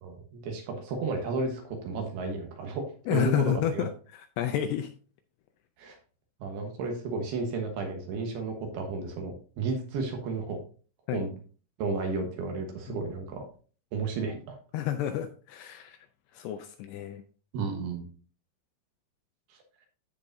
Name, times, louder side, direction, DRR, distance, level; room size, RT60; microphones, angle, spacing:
voice 1, 0.0-3.9 5.8-6.0 6.4-10.6 11.1-11.3 11.8-13.4 13.9-14.6 17.5-18.1 19.5-19.6, right 4 dB, 70° right, 3 dB, 3.0 m, -33 dB
voice 2, 3.1-3.9 4.4-4.9 11.1-11.3 12.9-13.0 14.7-16.0 16.3-17.2, left 11 dB, 80° left, 7 dB, 2.5 m, -30 dB
14.0 x 4.8 x 2.6 m, 0.39 s
omnidirectional pair, 5.2 m